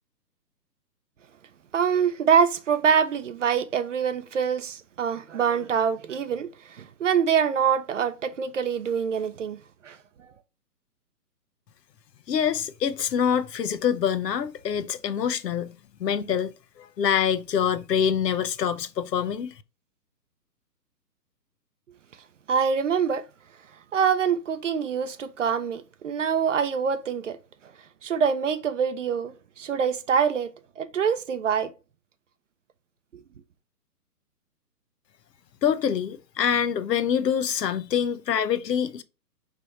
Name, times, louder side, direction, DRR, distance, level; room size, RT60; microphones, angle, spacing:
voice 1, 1.7-9.6 9.8-10.0 22.5-23.2 23.9-27.4 28.0-30.5 30.8-31.7, right 7 dB, 50° right, 0.5 m, -25 dB
voice 2, 12.3-16.5 16.8-19.5 35.6-39.0, left 8 dB, 75° left, 0.7 m, -25 dB
4.2 x 3.4 x 3.1 m
hypercardioid pair, 145°, 50 cm